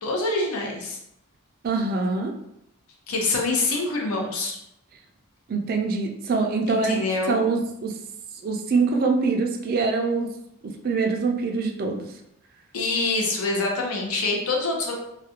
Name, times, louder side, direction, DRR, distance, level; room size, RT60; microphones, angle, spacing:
voice 1, 0.0-1.0 3.1-4.6 6.7-7.5 12.7-14.9, left 3 dB, 85° left, 0 dB, 0.6 m, -25 dB
voice 2, 1.6-2.3 5.5-8.0 8.4-10.3 10.8-12.0, right 4 dB, 45° right, 3 dB, 0.3 m, -24 dB
2.4 x 2.1 x 2.8 m, 0.78 s
head